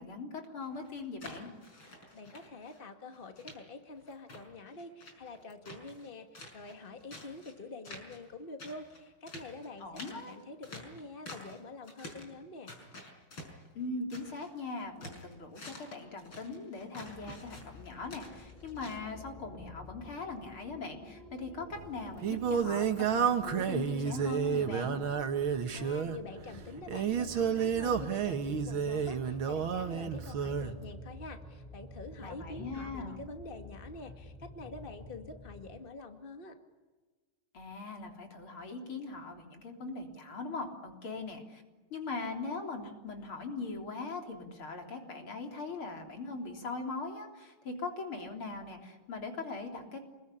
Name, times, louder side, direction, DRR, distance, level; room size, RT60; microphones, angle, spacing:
voice 1, 0.0-1.5 9.8-10.3 13.7-25.0 32.2-33.2 37.5-41.6 41.9-50.0, left 3 dB, 90° left, 3 dB, 4.5 m, -40 dB
sound 1, 0.6-2.8 3.1-3.6 4.0-6.1 6.3-7.5 7.8-8.3 8.6-11.6 11.8-12.3 12.7-14.5 14.8-19.0, left 1 dB, 75° left, 6.4 m, -49 dB
voice 2, 2.1-12.7 25.7-36.6, left 3 dB, 25° left, 5 dB, 2.2 m, -46 dB
sound 2, 17.1-35.8, left 1 dB, ahead, 4.5 m, -50 dB
Singing, 21.7-30.8, right 7 dB, 75° right, 2.3 m, -31 dB
28.0 x 21.5 x 10.0 m, 1.3 s
omnidirectional pair, 2.3 m